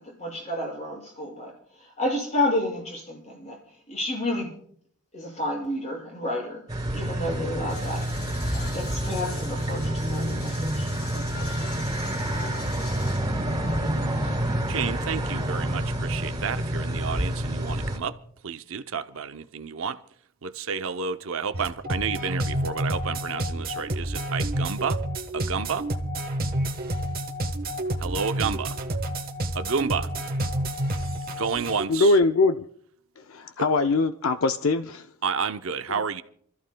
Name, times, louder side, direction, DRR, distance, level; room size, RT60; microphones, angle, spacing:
voice 1, 0.2-1.5 2.0-3.6 3.9-4.5 5.1-6.6 6.9-8.0 8.5-10.9 11.1-11.5, left 1 dB, 35° left, 6.1 m, -30 dB
sound 1, 6.7-18.0, right 1 dB, 20° right, 3.3 m, -28 dB
sound 2, 7.7-14.6, left 2 dB, 85° left, 5.3 m, -42 dB
voice 2, 14.7-18.2 18.4-20.0 20.4-25.0 25.3-25.9 28.0-28.8 29.5-30.1 31.3-32.2 35.2-36.2, right 6 dB, 65° right, 0.6 m, -30 dB
sound 3, 21.5-31.8, right 1 dB, 45° right, 1.2 m, -29 dB
voice 3, 31.9-32.7 33.3-35.1 35.9-36.0, left 3 dB, 70° left, 0.5 m, -22 dB
28.5 x 14.0 x 2.2 m
head